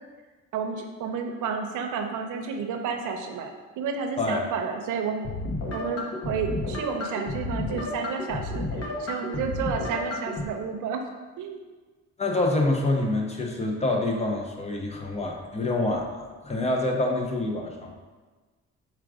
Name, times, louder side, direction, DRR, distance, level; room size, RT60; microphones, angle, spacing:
voice 1, 0.5-5.3 5.7-8.6 9.0-11.0 11.4-11.6, right 6 dB, 85° right, 4 dB, 0.6 m, -31 dB
sound 1, 5.2-10.4, left 2 dB, 55° left, 0.9 m, -32 dB
voice 2, 12.2-17.9, left 2 dB, 20° left, 1 dB, 0.7 m, -26 dB
4.5 x 2.5 x 4.8 m, 1.3 s
cardioid pair, 90°, 30 cm